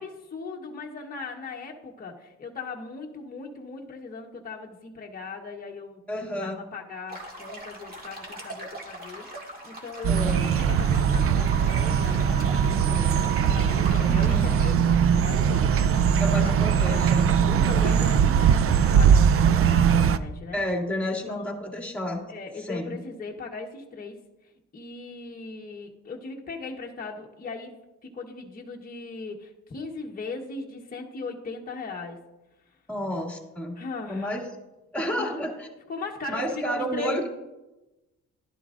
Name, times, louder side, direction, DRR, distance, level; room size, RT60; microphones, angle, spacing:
voice 1, 0.0-16.2 16.8-17.1 17.4-20.6 21.3-21.5 22.3-24.2 24.7-27.8 28.0-32.2 33.8-34.4 35.1-35.4 35.9-37.3, left 3 dB, 30° left, 0 dB, 1.1 m, -38 dB
voice 2, 6.1-6.6 10.1-10.5 14.0-14.6 16.2-17.3 20.5-22.2 22.6-23.0 32.9-33.8 34.1-34.4 34.9-35.7 36.3-37.3, left 1 dB, 5° left, 0 dB, 2.3 m, -31 dB
sound 1, 7.1-14.7, right 1 dB, 30° right, 2.2 m, -40 dB
sound 2, 10.0-20.2, right 7 dB, 50° right, 0.5 m, -21 dB
11.5 x 11.0 x 2.5 m, 1.0 s
cardioid pair, 90°, 30 cm